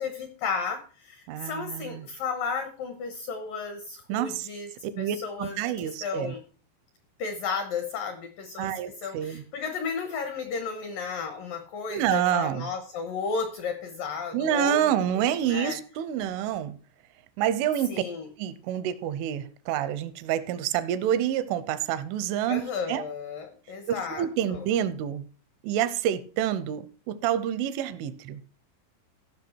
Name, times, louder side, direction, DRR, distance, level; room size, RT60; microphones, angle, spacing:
voice 1, 0.0-4.7 5.0-5.6 6.0-6.4 7.2-8.7 9.0-15.8 17.9-18.3 22.5-24.7, left 5 dB, 80° left, 2.0 m, -33 dB
voice 2, 1.3-2.0 4.1-4.5 4.9-6.3 8.6-9.4 11.9-12.7 14.3-16.8 17.4-18.0 18.4-23.0 23.9-25.2 25.6-28.4, right 10 dB, 85° right, 3.2 m, -28 dB
15.5 x 6.0 x 4.4 m
omnidirectional pair, 5.6 m